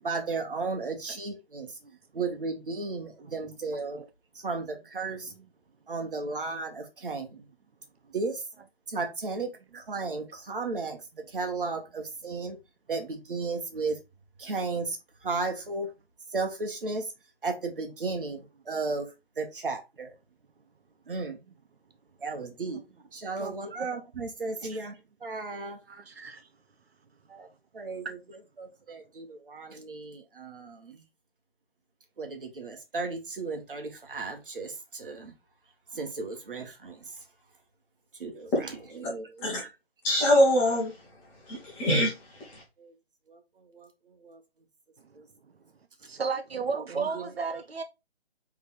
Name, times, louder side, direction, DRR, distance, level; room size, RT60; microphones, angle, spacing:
voice 1, 0.0-1.7 2.1-4.0 4.4-5.3 5.9-7.4 8.1-8.4 8.9-11.0 11.3-12.6 12.9-14.0 14.4-15.0 15.2-15.9 16.3-17.1 17.4-20.1 21.1-21.4 22.2-22.8 23.1-25.0 25.2-25.8 27.3-27.5 27.7-28.2 28.6-31.0 32.2-35.3 35.9-37.1 38.2-39.7 42.8-42.9 43.3-43.4 43.7-43.9 44.2-44.4 45.1-45.2 46.9-47.3, right 3 dB, 55° right, 1.4 m, -34 dB
voice 2, 23.4-23.9 24.7-24.8 25.9-26.5 46.1-47.8, right 5 dB, 70° right, 0.7 m, -34 dB
voice 3, 40.0-40.9 41.5-42.6, left 1 dB, 15° left, 1.3 m, -24 dB
3.9 x 3.5 x 3.7 m
figure-of-eight pair, 150°, 31 cm